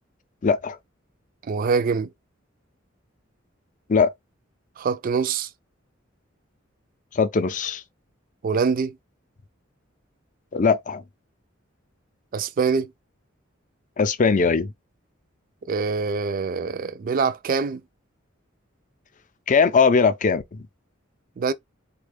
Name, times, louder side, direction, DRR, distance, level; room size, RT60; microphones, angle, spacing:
voice 1, 0.4-0.8 3.9-4.1 7.1-7.8 10.5-11.0 14.0-14.7 19.5-20.7, left 5 dB, 40° left, 0.5 m, -20 dB
voice 2, 1.5-2.1 4.8-5.5 8.4-9.0 12.3-12.9 15.7-17.8 21.4-21.5, right 5 dB, 45° right, 0.4 m, -24 dB
4.1 x 2.3 x 3.2 m
head